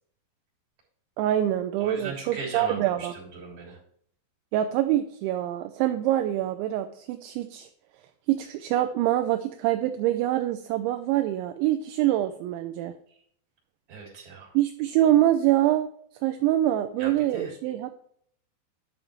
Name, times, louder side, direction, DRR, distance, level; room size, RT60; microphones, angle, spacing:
voice 1, 1.2-3.1 4.5-7.7 8.3-12.9 14.5-15.9 16.2-17.9, right 13 dB, 80° right, 7 dB, 2.8 m, -25 dB
voice 2, 1.8-3.8 13.9-14.5 17.0-17.5, right 4 dB, 35° right, -3 dB, 3.7 m, -38 dB
10.5 x 7.1 x 3.1 m, 0.62 s
omnidirectional pair, 5.5 m